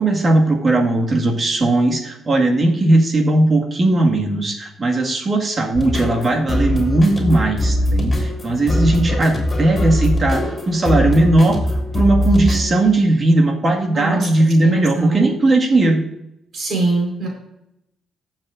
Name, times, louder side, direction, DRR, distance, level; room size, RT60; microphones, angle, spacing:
voice 1, 0.0-11.6 11.9-16.0, right 2 dB, 40° right, 2 dB, 1.9 m, -17 dB
sound 1, 5.7-12.7, left 1 dB, 25° left, 3.2 m, -21 dB
voice 2, 13.9-14.3 14.6-15.2 16.5-17.3, right 3 dB, 60° right, -1 dB, 4.4 m, -21 dB
19.0 x 7.4 x 2.6 m, 0.85 s
cardioid pair, 90°, 0 cm